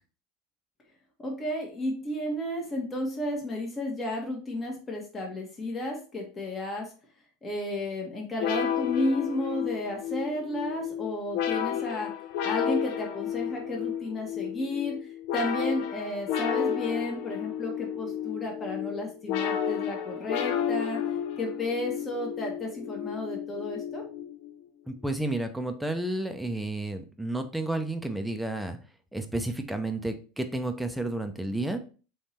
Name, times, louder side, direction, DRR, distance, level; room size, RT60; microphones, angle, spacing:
voice 1, 1.2-6.9 7.4-12.1 12.4-21.0 21.4-24.0, left 1 dB, 25° left, 0 dB, 1.3 m, -33 dB
sound 1, 8.4-24.6, left 9 dB, 65° left, 0.6 m, -32 dB
voice 2, 24.9-28.8 29.1-31.8, right 2 dB, 5° right, 7 dB, 0.6 m, -31 dB
3.5 x 3.1 x 4.2 m, 0.37 s
supercardioid pair, 110°, 0 cm